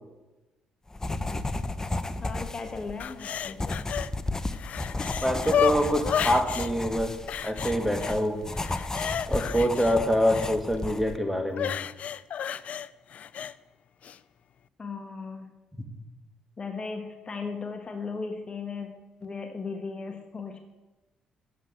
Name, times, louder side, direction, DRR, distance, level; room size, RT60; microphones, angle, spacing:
sound 1, 0.9-11.2, left 2 dB, 20° left, 0.9 m, -33 dB
voice 1, 2.2-3.6 14.8-15.5 16.6-18.9 19.2-20.6, left 4 dB, 35° left, 5 dB, 1.5 m, -36 dB
sound 2, 3.0-4.1 4.4-6.7 7.3-8.2 8.5-10.5 11.5-13.5 14.0-14.2, left 8 dB, 60° left, 0.4 m, -31 dB
voice 2, 5.2-7.1 7.4-8.4 9.3-11.7, equal, ahead, 4 dB, 2.4 m, -25 dB
11.0 x 7.8 x 7.8 m, 1.1 s
supercardioid pair, 65°, 3 cm